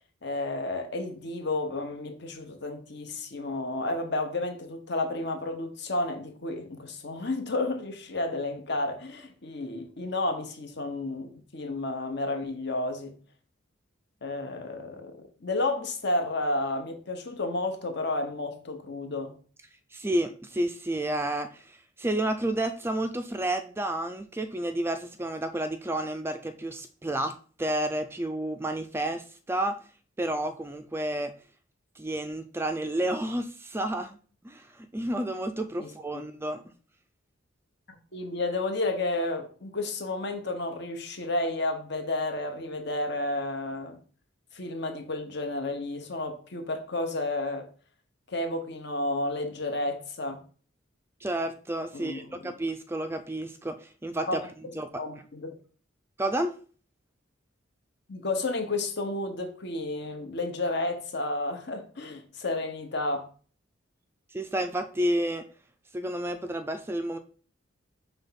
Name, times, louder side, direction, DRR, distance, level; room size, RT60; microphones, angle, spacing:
voice 1, 0.2-13.2 14.2-19.3 35.8-36.2 37.9-44.0 44.5-47.7 48.3-50.4 51.9-52.5 54.3-55.5 58.1-63.3, left 2 dB, 60° left, 1.1 m, -31 dB
voice 2, 19.9-29.8 30.2-31.3 32.0-34.2 34.4-36.6 51.2-54.4 54.7-55.0 56.2-56.6 64.3-65.4 65.9-67.2, right 1 dB, 10° right, 0.4 m, -30 dB
5.4 x 3.4 x 5.7 m
head